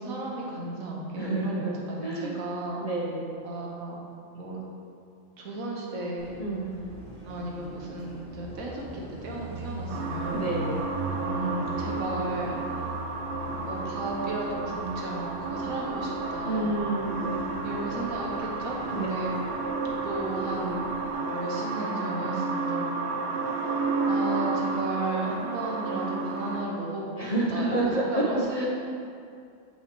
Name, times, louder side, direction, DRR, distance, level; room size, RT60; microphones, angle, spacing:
voice 1, 0.0-2.8 3.4-4.0 4.3-4.6 5.4-6.3 7.2-10.5 11.2-12.6 13.6-16.8 17.6-19.3 20.0-21.0 21.3-22.9 23.6-23.7 24.1-28.7, right 2 dB, 90° right, -2 dB, 1.5 m, -34 dB
voice 2, 1.2-2.4 2.8-3.4 6.4-6.9 10.3-10.8 16.4-17.4 18.8-19.1 27.2-28.7, right 2 dB, 40° left, -4 dB, 0.6 m, -29 dB
Car passing by, 6.2-21.1, right 1 dB, 30° right, 1.4 m, -41 dB
sound 1, 9.9-26.6, right 3 dB, 60° right, 0.9 m, -31 dB
8.3 x 5.6 x 3.0 m, 2.4 s
omnidirectional pair, 1.4 m